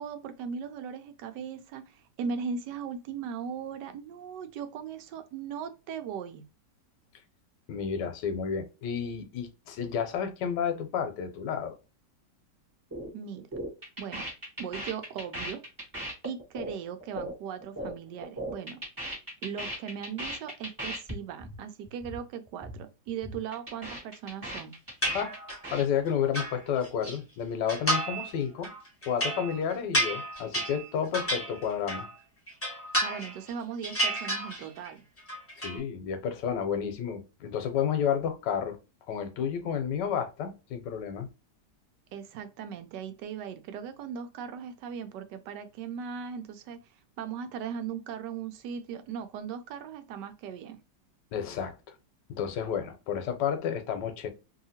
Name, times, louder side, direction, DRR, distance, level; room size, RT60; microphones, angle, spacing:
voice 1, 0.0-6.4 13.1-13.5 14.0-14.2 14.6-15.6 16.2-18.8 19.4-24.7 33.0-35.0 42.1-46.8 47.2-50.8, right 7 dB, 75° right, 1.2 m, -38 dB
voice 2, 7.7-11.8 25.1-25.4 25.7-28.7 29.1-32.1 35.6-38.8 39.1-41.3 51.3-51.8 52.3-54.3, left 8 dB, 80° left, 1.3 m, -31 dB
sound 1, 12.9-13.1 13.4-17.9 18.2-21.1 21.4-21.6 21.8-22.2 22.5-22.8 23.1-25.8, equal, 15° right, 0.9 m, -38 dB
sound 2, 25.0-25.7 26.1-27.2 27.7-28.3 28.6-32.1 32.5-33.5 33.8-34.9 35.2-35.8, right 1 dB, 15° left, 0.5 m, -31 dB
2.8 x 2.7 x 2.7 m
omnidirectional pair, 1.9 m